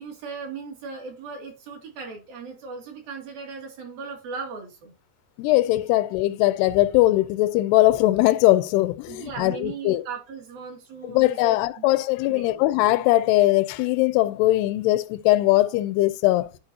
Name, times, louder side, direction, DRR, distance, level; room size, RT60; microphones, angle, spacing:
voice 1, 0.0-4.9 5.9-6.0 9.1-11.9 12.3-12.6, right 5 dB, 65° right, 4.1 m, -37 dB
voice 2, 5.4-10.0 11.0-16.5, left 17 dB, 90° left, 2.7 m, -20 dB
11.5 x 4.7 x 2.8 m
omnidirectional pair, 4.6 m